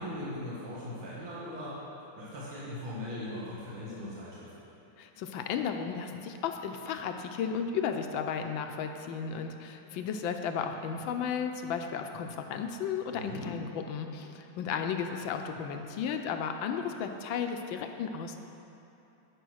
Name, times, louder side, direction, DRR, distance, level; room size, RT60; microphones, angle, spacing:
voice 1, 0.0-1.8 2.2-4.5 13.1-13.5, left 1 dB, 75° right, -10 dB, 2.6 m, -39 dB
voice 2, 5.0-18.4, left 7 dB, 75° left, 6 dB, 1.3 m, -34 dB
11.0 x 5.4 x 6.3 m, 2.9 s
omnidirectional pair, 2.3 m